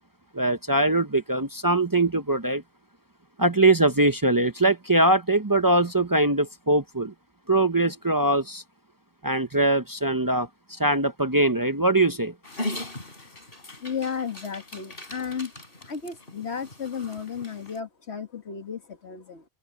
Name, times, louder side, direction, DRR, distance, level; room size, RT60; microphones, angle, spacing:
voice 1, 0.3-2.6 3.4-7.1 7.5-8.6 9.2-12.3, right 2 dB, 25° right, 0.7 m, -22 dB
Dog, 12.4-17.8, left 1 dB, 60° left, 4.0 m, -39 dB
voice 2, 13.8-15.5 15.8-19.4, left 6 dB, 85° left, 2.0 m, -33 dB
omnidirectional pair, 1.1 m